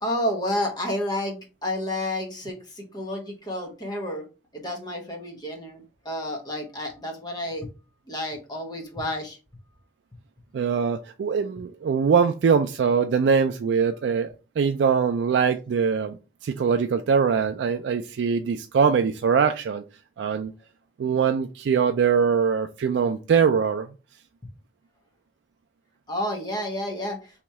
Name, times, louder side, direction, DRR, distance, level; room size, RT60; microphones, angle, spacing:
voice 1, 0.0-4.3 4.5-7.7 8.1-9.4 26.1-27.2, left 1 dB, 25° left, 1.0 m, -30 dB
voice 2, 10.5-16.2 16.4-19.8 20.2-20.5 21.0-23.9, right 6 dB, 90° right, 0.3 m, -22 dB
3.1 x 2.8 x 4.5 m
head